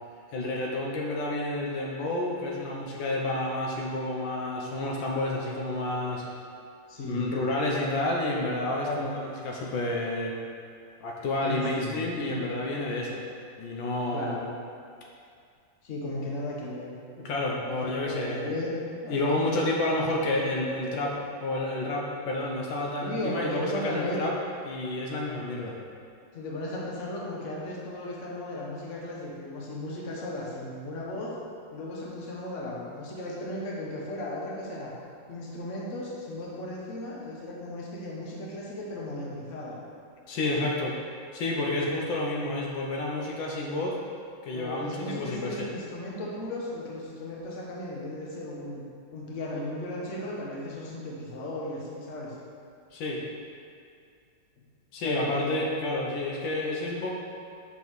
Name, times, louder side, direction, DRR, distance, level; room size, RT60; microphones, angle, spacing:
voice 1, 0.3-6.3 7.1-10.3 11.0-13.2 13.6-14.4 17.2-18.6 19.1-24.3 24.7-25.7 40.3-41.0 41.3-44.0 44.4-45.7 52.9-53.2 54.9-57.1, left 2 dB, 80° left, -2 dB, 1.5 m, -30 dB
voice 2, 6.9-7.4 8.8-9.0 11.4-12.4 14.1-14.4 15.8-17.0 17.7-18.7 19.0-19.4 23.0-24.2 26.3-31.3 31.7-34.9 35.3-39.8 44.5-48.8 49.1-52.3 55.0-55.6, left 1 dB, 45° left, -4 dB, 1.3 m, -35 dB
5.7 x 4.6 x 6.1 m, 2.4 s
omnidirectional pair, 2.1 m